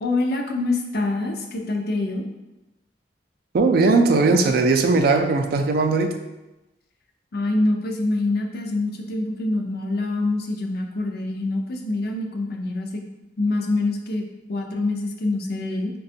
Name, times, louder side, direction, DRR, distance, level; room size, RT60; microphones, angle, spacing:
voice 1, 0.0-2.3 7.3-13.0 13.4-14.2 14.5-15.9, left 2 dB, 60° left, 3 dB, 0.5 m, -25 dB
voice 2, 3.5-6.2, right 3 dB, 60° right, 5 dB, 0.4 m, -18 dB
4.9 x 2.2 x 2.7 m, 1.0 s
head